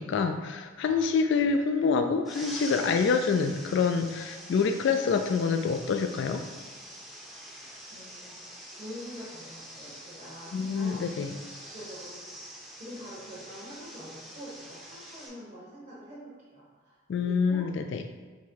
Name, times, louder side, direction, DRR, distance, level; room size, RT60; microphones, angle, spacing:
voice 1, 0.0-6.4 10.5-11.3 17.1-18.0, left 5 dB, 60° left, 7 dB, 0.3 m, -26 dB
sound 1, 2.3-15.3, equal, ahead, 0.6 m, -45 dB
voice 2, 7.9-8.4 8.7-11.0 11.7-12.2 12.7-17.7, equal, 40° right, -8 dB, 1.0 m, -45 dB
4.0 x 3.0 x 4.4 m, 1.4 s
head